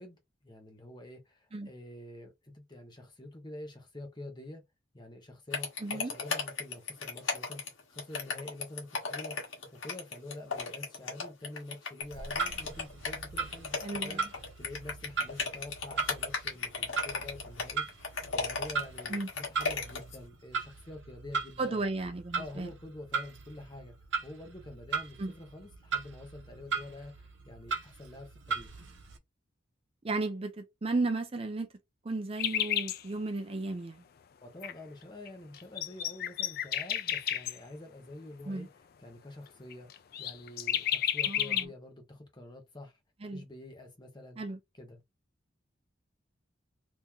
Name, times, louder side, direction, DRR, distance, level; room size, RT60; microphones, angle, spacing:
voice 1, 0.0-4.6 4.9-7.6 7.9-21.8 22.3-23.9 24.2-28.8 34.4-43.0 43.3-44.4 44.7-45.0, left 1 dB, 20° left, 0.8 m, -47 dB
sound 1, 5.5-20.2, left 4 dB, 85° left, 1.2 m, -35 dB
voice 2, 5.8-6.1 13.8-14.3 19.1-19.3 21.6-22.7 25.2-25.3 30.0-31.7 32.0-34.0 38.5-38.7 41.2-41.7 43.2-43.4 44.4-44.6, right 3 dB, 30° right, 0.5 m, -34 dB
Clock, 12.0-29.2, right 5 dB, 65° right, 0.9 m, -38 dB
sound 2, 32.4-33.0 34.6-34.7 35.3-35.4 35.5-37.6 39.7-41.6, left 11 dB, 50° left, 0.3 m, -31 dB
3.0 x 2.6 x 3.6 m
head